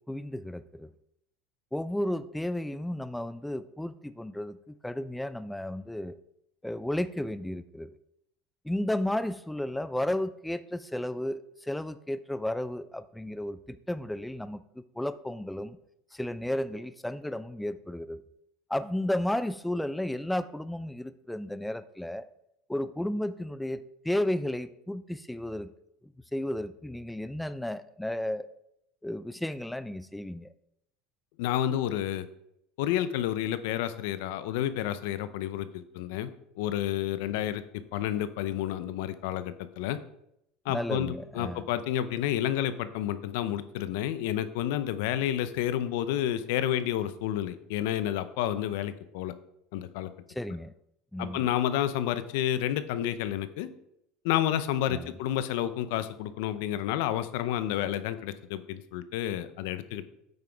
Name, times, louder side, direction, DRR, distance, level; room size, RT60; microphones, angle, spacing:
voice 1, 0.1-0.9 1.7-6.2 6.6-7.9 8.7-15.8 16.1-18.2 18.7-22.3 22.7-25.7 26.3-28.5 29.0-30.5 40.7-41.7 50.4-50.7 51.1-51.5 54.9-55.1, left 1 dB, 5° left, 13 dB, 0.3 m, -33 dB
voice 2, 31.4-32.2 32.8-37.6 37.9-40.0 40.7-49.3 49.7-50.1 51.2-53.7 54.2-60.0, left 11 dB, 75° left, 13 dB, 0.6 m, -30 dB
8.8 x 5.9 x 3.5 m, 0.78 s
supercardioid pair, 115°, 0 cm